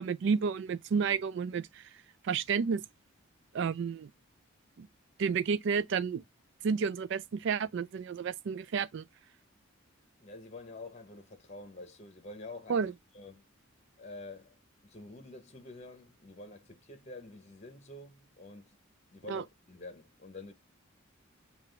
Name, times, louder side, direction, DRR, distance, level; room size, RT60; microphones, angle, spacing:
voice 1, 0.0-1.9 2.2-2.8 3.5-4.1 4.8-4.9 5.2-6.2 6.6-9.0 12.7-12.9 19.3-19.4, right 6 dB, 55° right, 0.3 m, -31 dB
voice 2, 10.2-12.8 13.1-13.4 14.0-18.8 19.1-20.5, left 2 dB, 30° left, 0.9 m, -48 dB
5.8 x 2.4 x 3.3 m
head